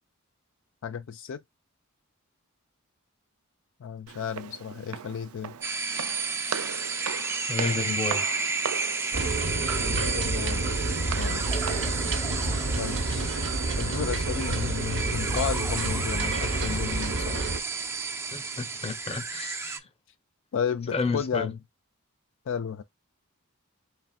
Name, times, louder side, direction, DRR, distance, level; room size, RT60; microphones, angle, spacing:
voice 1, 0.8-1.4 3.8-5.5 9.8-10.7 11.1-11.4 12.8-13.3 13.8-17.4 20.5-21.6 22.5-22.8, left 7 dB, 60° left, 0.4 m, -33 dB
Walk footsteps, 4.1-12.1, right 8 dB, 85° right, 0.4 m, -38 dB
sound 1, 5.6-19.8, right 4 dB, 10° right, 0.5 m, -32 dB
voice 2, 7.5-8.2 18.3-19.8 20.9-21.5, left 4 dB, 30° left, 0.7 m, -31 dB
sound 2, 9.1-17.6, right 2 dB, 60° right, 0.9 m, -29 dB
4.0 x 3.3 x 2.3 m
head